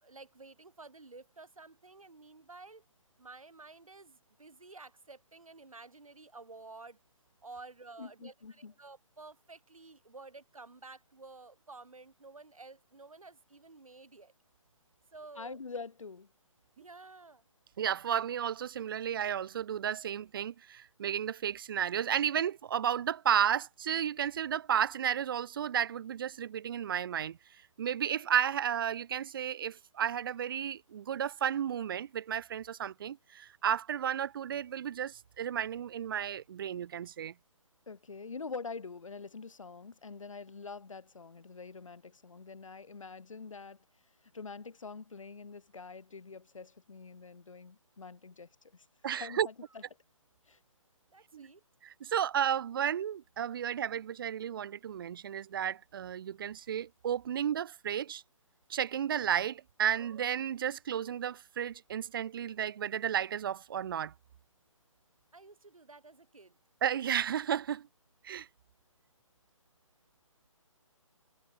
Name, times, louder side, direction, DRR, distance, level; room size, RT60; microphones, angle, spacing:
voice 1, 0.0-2.8 3.2-7.0 7.4-14.3 15.1-15.6 16.8-17.4 51.1-51.6 65.3-66.6, right 3 dB, 80° right, 4.1 m, -52 dB
voice 2, 8.0-8.7 15.4-16.3 37.9-43.8 44.3-48.9 49.2-49.5 50.5-50.6, left 4 dB, 65° left, 3.9 m, -45 dB
voice 3, 17.8-27.4 27.8-37.3 49.0-49.5 51.3-51.5 51.8-58.2 58.7-64.1 66.8-67.9 68.2-68.5, right 9 dB, 40° right, 1.2 m, -33 dB
figure-of-eight pair, 145°, 18 cm